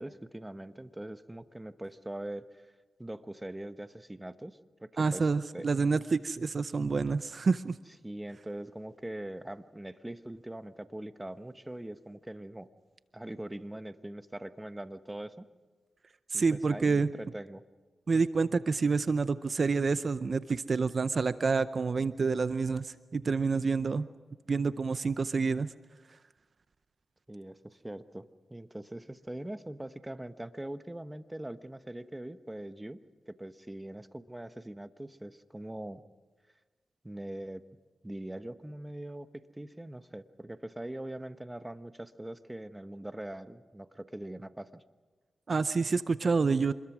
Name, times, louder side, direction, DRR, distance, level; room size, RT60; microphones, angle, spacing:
voice 1, 0.0-2.6 3.0-5.3 5.5-5.7 8.0-12.7 13.1-15.4 16.3-17.6 27.3-33.0 33.3-36.0 37.0-37.6 38.0-39.3 39.5-44.8, right 1 dB, 15° right, 11 dB, 1.1 m, -42 dB
voice 2, 5.0-7.8 16.3-17.1 18.1-24.1 24.5-25.7 45.5-46.7, right 4 dB, 55° right, 13 dB, 0.6 m, -28 dB
26.5 x 21.0 x 6.2 m, 1.3 s
cardioid pair, 55°, 0 cm